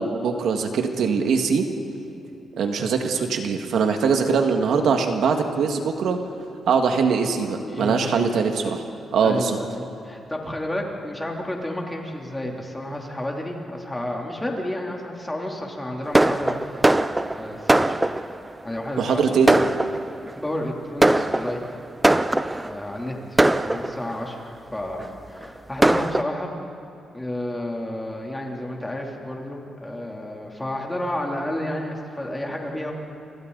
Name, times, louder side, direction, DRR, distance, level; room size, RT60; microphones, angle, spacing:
voice 1, 0.0-1.6 2.6-6.2 6.7-8.8 9.1-9.6 19.0-19.6, right 5 dB, 75° right, 4 dB, 1.9 m, -22 dB
voice 2, 7.7-8.3 9.2-16.5 17.3-18.0 18.6-19.5 20.4-21.6 22.6-24.4 24.7-26.5 27.1-32.9, left 1 dB, 10° left, -1 dB, 3.1 m, -31 dB
Fireworks, 16.1-18.5 19.1-19.2 19.5-20.3 21.0-22.8 23.4-24.3 25.0-25.1 25.4-25.5 25.8-26.2, right 1 dB, 10° right, 0.5 m, -20 dB
29.0 x 26.0 x 4.1 m, 3.0 s
cardioid pair, 130°, 0 cm